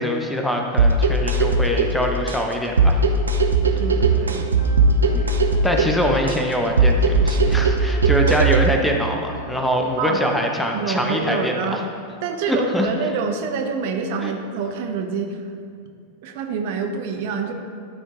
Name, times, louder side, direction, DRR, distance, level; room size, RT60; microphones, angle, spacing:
voice 1, 0.0-3.0 5.1-5.3 5.6-11.8 12.5-12.9 14.2-14.3, equal, 5° left, 2 dB, 0.7 m, -23 dB
sound 1, 0.8-8.8, right 3 dB, 75° right, 0.6 m, -19 dB
sound 2, 3.6-11.3, left 1 dB, 50° left, 1.2 m, -39 dB
voice 2, 3.8-4.5 10.0-10.2 10.7-11.8 12.2-15.4 16.2-17.5, right 5 dB, 50° right, 3 dB, 0.8 m, -26 dB
12.0 x 4.5 x 3.7 m, 2.4 s
figure-of-eight pair, 90°, 0 cm